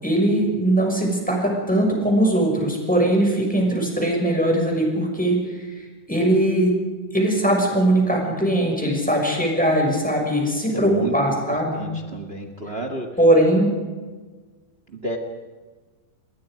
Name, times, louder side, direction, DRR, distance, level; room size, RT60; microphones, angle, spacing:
voice 1, 0.0-5.4 6.1-6.7 7.1-11.8 13.2-13.7, right 1 dB, ahead, 0 dB, 5.9 m, -20 dB
voice 2, 10.7-11.4 11.7-13.1 14.9-15.2, right 2 dB, 45° right, 5 dB, 0.8 m, -31 dB
28.5 x 21.0 x 5.1 m, 1.3 s
omnidirectional pair, 4.6 m